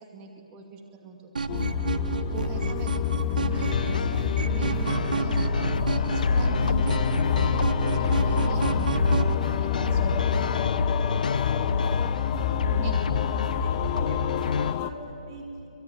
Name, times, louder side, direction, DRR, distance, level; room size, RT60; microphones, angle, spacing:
voice 1, 0.1-1.3 2.3-10.6 12.7-13.1, right 6 dB, 20° right, 3 dB, 2.3 m, -43 dB
sound 1, 1.4-9.3, right 4 dB, 85° right, 1.2 m, -30 dB
sound 2, 1.5-14.9, left 8 dB, 25° left, 0.8 m, -28 dB
sound 3, 3.5-14.7, left 4 dB, 80° left, 0.9 m, -28 dB
voice 2, 12.6-13.2 13.5-13.7 14.0-15.7, right 2 dB, 40° right, 0 dB, 5.7 m, -46 dB
25.0 x 22.0 x 9.4 m, 2.7 s
hypercardioid pair, 160°, 4 cm